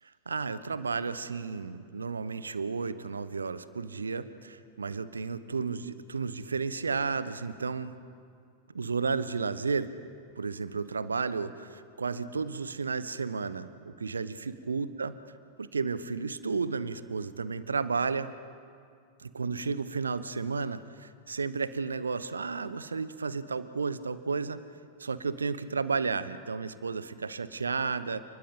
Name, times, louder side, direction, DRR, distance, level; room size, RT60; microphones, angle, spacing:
voice 1, 0.3-7.9 8.7-9.9 10.4-15.1 15.6-18.3 19.2-24.6 25.0-28.2, right 4 dB, 75° right, 15 dB, 1.0 m, -32 dB
29.5 x 20.5 x 5.5 m, 2.3 s
figure-of-eight pair, 90°, 0 cm